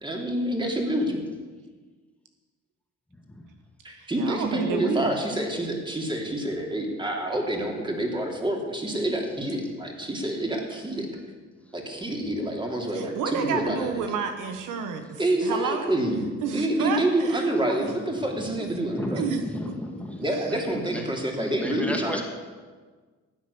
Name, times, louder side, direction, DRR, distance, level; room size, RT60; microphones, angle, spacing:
voice 1, 0.0-1.2 3.8-11.1 11.7-14.1 15.2-19.3 20.2-22.2, right 1 dB, 15° right, 1 dB, 3.1 m, -27 dB
voice 2, 4.0-5.1 12.9-15.8 16.4-17.9 19.1-19.4, right 6 dB, 85° right, 6 dB, 1.4 m, -30 dB
voice 3, 18.9-21.0 21.4-22.2, left 1 dB, 5° left, 1 dB, 2.4 m, -34 dB
15.0 x 9.3 x 7.0 m, 1.4 s
cardioid pair, 90°, 30 cm